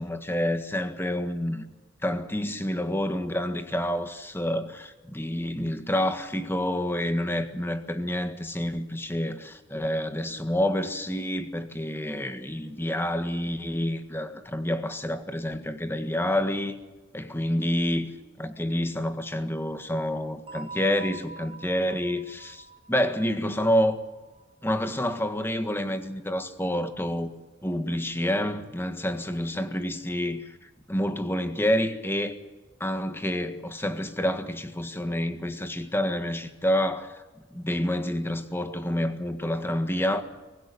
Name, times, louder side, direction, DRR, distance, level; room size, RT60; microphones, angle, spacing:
voice 1, 0.0-1.6 2.0-16.7 17.1-18.1 18.4-24.0 24.6-27.3 27.6-30.6 30.9-32.3 32.8-37.2 37.5-40.2, left 1 dB, 10° left, 1.6 m, -28 dB
sound 1, 20.5-25.1, right 3 dB, 30° right, 4.3 m, -45 dB
24.5 x 15.5 x 10.0 m
head